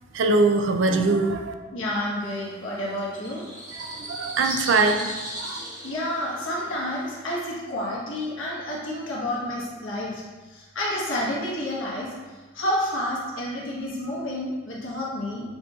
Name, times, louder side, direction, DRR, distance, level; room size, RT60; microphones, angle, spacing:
voice 1, 0.1-1.5 3.8-5.1 5.4-5.6, right 3 dB, 70° right, 5 dB, 0.4 m, -22 dB
voice 2, 1.7-3.4 5.8-10.2 10.5-12.1 12.5-15.6, left 1 dB, 80° left, -5 dB, 1.2 m, -29 dB
sound 1, 2.2-7.4, right 1 dB, 50° right, 1.1 m, -38 dB
5.9 x 2.8 x 2.3 m, 1.3 s
head